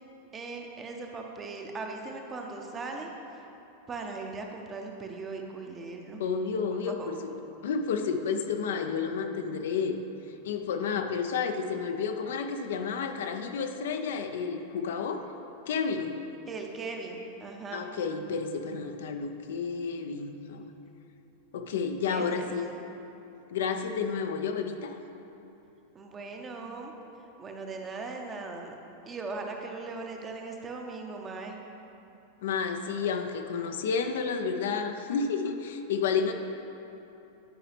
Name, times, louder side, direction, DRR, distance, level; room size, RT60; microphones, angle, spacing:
voice 1, 0.3-3.1 3.9-6.2 6.9-7.1 16.5-17.9 22.1-22.8 25.9-26.9 27.4-28.7 29.1-31.6, right 3 dB, 20° right, 2 dB, 0.8 m, -39 dB
voice 2, 6.2-7.2 7.6-10.0 10.3-15.2 15.7-16.2 17.7-20.7 21.5-22.6 23.5-25.0 32.4-36.3, left 5 dB, 60° left, 6 dB, 0.5 m, -31 dB
11.0 x 4.8 x 3.3 m, 2.9 s
figure-of-eight pair, 90°, 0 cm